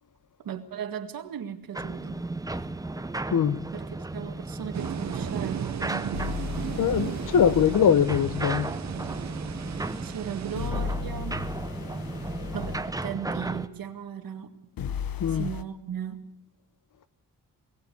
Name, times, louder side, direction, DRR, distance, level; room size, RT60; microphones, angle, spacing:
voice 1, 0.4-2.2 3.7-6.3 10.0-11.5 12.5-14.5 15.3-16.2, right 8 dB, 85° right, 2.0 m, -37 dB
sound 1, 1.7-13.7, right 2 dB, 10° right, 0.8 m, -35 dB
sound 2, 4.7-10.7, right 9 dB, 55° right, 0.8 m, -36 dB
sound 3, 6.1-7.8 10.6-12.9 14.8-15.6, left 6 dB, 85° left, 1.1 m, -35 dB
voice 2, 6.8-8.7 15.2-15.5, left 8 dB, 65° left, 1.0 m, -22 dB
21.5 x 18.5 x 6.8 m
wide cardioid pair, 140°, 34 cm